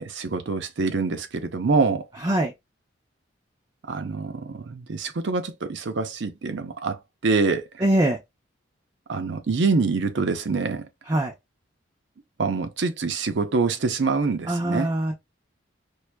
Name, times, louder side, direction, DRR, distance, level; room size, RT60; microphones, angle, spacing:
voice 1, 0.0-2.1 3.9-7.8 9.1-10.9 12.4-14.9, right 4 dB, 70° right, 0.6 m, -25 dB
voice 2, 2.2-2.5 7.8-8.2 11.1-11.3 14.5-15.1, right 1 dB, 20° right, 0.4 m, -22 dB
4.6 x 2.5 x 2.2 m
head